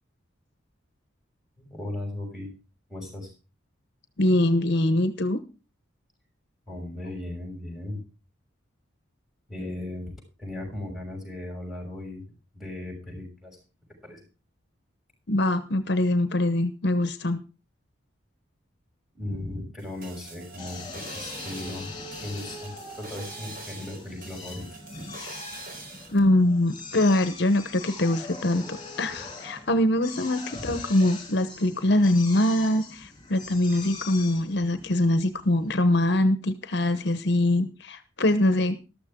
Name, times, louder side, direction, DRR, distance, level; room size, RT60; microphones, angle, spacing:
voice 1, 1.6-2.5 2.9-3.3 6.7-8.0 9.5-10.1 10.4-12.2 12.5-13.6 14.0-14.2 19.1-21.9 22.2-24.6 30.5-30.8, left 1 dB, ahead, 0 dB, 6.5 m, -37 dB
voice 2, 4.2-5.4 15.3-17.4 19.3-19.4 26.1-38.7, left 1 dB, 55° left, 11 dB, 1.0 m, -23 dB
sound 1, 19.8-26.2, right 3 dB, 45° right, 4.1 m, -44 dB
Drill, 20.6-35.9, left 3 dB, 25° left, 3.7 m, -42 dB
13.5 x 13.0 x 3.7 m, 0.32 s
head